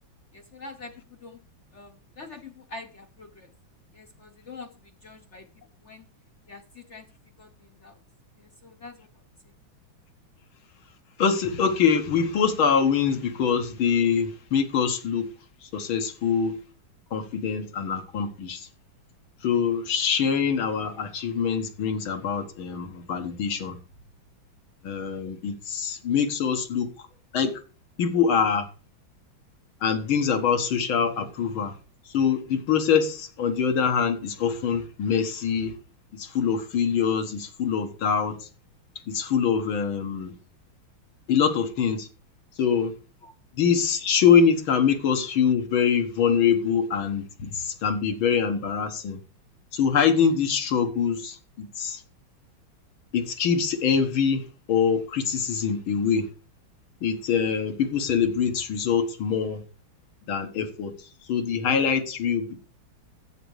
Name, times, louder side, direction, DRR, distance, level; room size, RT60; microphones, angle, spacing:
voice 1, 0.3-0.9 1.2-1.4 1.7-3.5 3.9-4.7 5.0-5.5 5.8-6.0 6.5-7.1 7.4-8.0 8.4-9.1 43.2-43.3, left 3 dB, 50° left, 0.9 m, -44 dB
voice 2, 11.2-15.3 15.6-16.5 17.1-18.7 19.4-23.8 24.8-27.1 27.3-27.5 28.0-28.7 29.8-31.7 32.1-35.7 36.1-38.5 39.1-40.3 41.3-42.1 42.6-42.9 43.6-49.2 49.7-52.0 53.1-54.4 54.7-56.3 57.0-59.6 60.3-62.6, left 7 dB, 75° left, 2.2 m, -24 dB
11.0 x 8.1 x 4.8 m
omnidirectional pair, 2.3 m